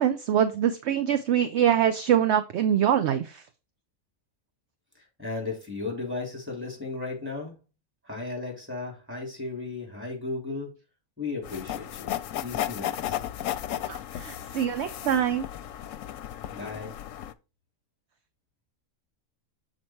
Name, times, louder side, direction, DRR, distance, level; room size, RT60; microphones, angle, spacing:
voice 1, 0.0-3.4 13.9-15.5, right 9 dB, 60° right, 0.8 m, -24 dB
voice 2, 4.9-7.5 8.0-10.8 11.2-12.1 12.4-13.2 16.5-17.0, left 3 dB, 10° right, 3.1 m, -35 dB
sound 1, 11.4-17.3, left 11 dB, 70° left, 0.9 m, -34 dB
7.5 x 4.2 x 4.4 m
omnidirectional pair, 1.5 m